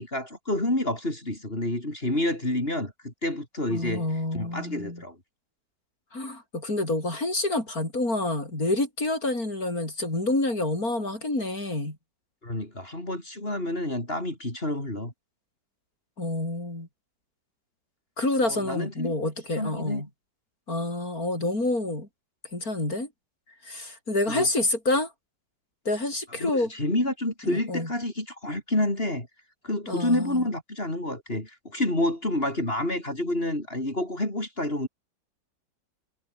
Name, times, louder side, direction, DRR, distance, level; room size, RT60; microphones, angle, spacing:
voice 1, 0.0-4.1 4.3-5.2 12.4-15.1 18.4-19.1 19.6-20.0 24.3-24.5 26.4-29.3 29.6-34.9, left 1 dB, 30° left, 5.7 m, -29 dB
voice 2, 3.7-5.0 6.1-12.0 16.2-16.9 18.2-20.1 20.7-22.1 22.5-23.1 23.6-25.1 25.8-26.7 27.4-27.9 29.9-30.4, left 2 dB, 50° left, 8.1 m, -28 dB
omnidirectional pair, 2.0 m